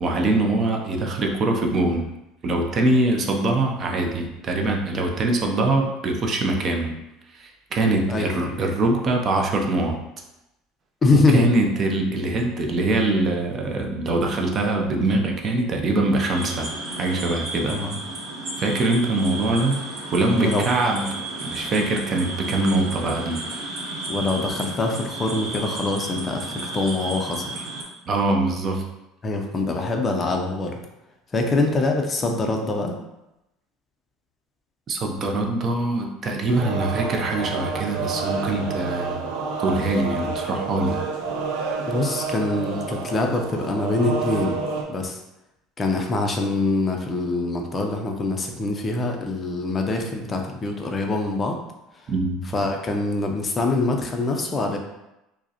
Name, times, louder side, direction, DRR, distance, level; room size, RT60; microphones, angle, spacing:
voice 1, 0.0-2.1 2.4-6.9 7.3-10.0 11.3-16.7 17.0-17.8 18.6-19.8 20.1-21.1 21.4-23.4 28.1-28.8 34.9-39.2 39.6-41.0 52.1-52.4, right 2 dB, 35° right, 2 dB, 0.5 m, -23 dB
voice 2, 8.1-8.6 11.0-11.5 17.7-18.0 20.4-20.7 24.1-27.7 29.2-30.8 31.3-33.0 41.9-44.6 44.9-45.2 45.8-51.6 51.9-52.1 52.5-54.8, left 2 dB, 20° left, 3 dB, 0.4 m, -24 dB
sound 1, 16.3-27.8, right 2 dB, 60° right, 0.9 m, -33 dB
sound 2, 36.5-44.8, right 4 dB, 85° right, 0.5 m, -29 dB
4.8 x 2.0 x 2.8 m, 0.92 s
cardioid pair, 140°, 0 cm